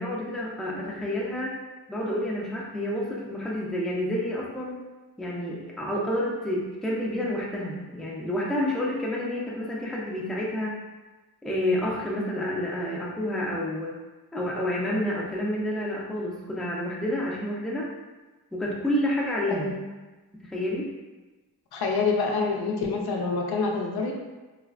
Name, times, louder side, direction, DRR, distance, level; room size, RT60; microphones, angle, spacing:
voice 1, 0.0-1.5 1.9-4.7 5.2-10.8 11.4-13.9 14.3-17.9 18.5-19.7 20.4-20.9, left 1 dB, ahead, -4 dB, 0.3 m, -29 dB
voice 2, 21.7-24.1, left 4 dB, 75° left, 1 dB, 0.5 m, -26 dB
3.2 x 2.0 x 2.4 m, 1.2 s
wide cardioid pair, 140°, 39 cm